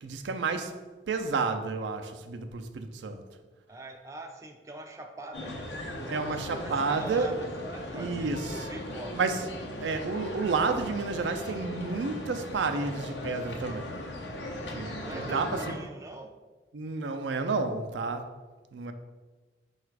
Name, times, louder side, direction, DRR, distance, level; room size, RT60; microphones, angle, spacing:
voice 1, 0.0-0.8 1.1-3.2 6.1-7.3 7.9-8.6 9.1-9.5 9.8-14.0 14.7-14.9 15.3-15.8 16.7-18.3 18.7-18.9, right 4 dB, 90° right, 0.4 m, -30 dB
voice 2, 3.7-5.7 6.3-7.5 7.7-9.2 15.0-16.3, right 1 dB, 20° right, 0.3 m, -43 dB
sound 1, 5.3-15.7, left 1 dB, 80° left, 0.7 m, -38 dB
4.8 x 2.4 x 4.5 m
head